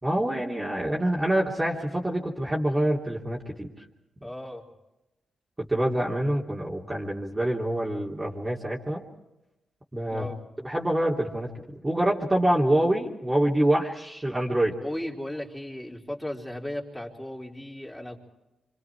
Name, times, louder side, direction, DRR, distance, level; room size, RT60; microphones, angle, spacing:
voice 1, 0.0-3.7 5.6-9.0 9.9-10.3 10.6-11.5 11.8-14.8, right 1 dB, 20° right, -4 dB, 3.2 m, -26 dB
voice 2, 4.2-4.6 10.1-10.4 14.8-18.2, left 1 dB, 10° left, -2 dB, 4.3 m, -36 dB
26.5 x 26.0 x 4.8 m, 0.96 s
cardioid pair, 70°, 0 cm